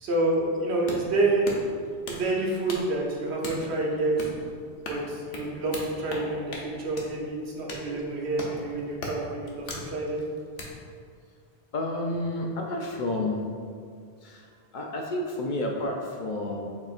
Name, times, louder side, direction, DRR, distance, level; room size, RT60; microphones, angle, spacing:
voice 1, 0.0-1.7 2.0-4.2 4.9-10.3, right 2 dB, 85° right, -2 dB, 1.1 m, -28 dB
sound 1, 0.6-10.7, left 2 dB, 80° left, 1.0 m, -40 dB
voice 2, 11.7-13.4 14.2-14.4 14.7-16.6, left 1 dB, 60° left, 0 dB, 0.6 m, -30 dB
6.6 x 2.9 x 2.4 m, 2.2 s
omnidirectional pair, 1.1 m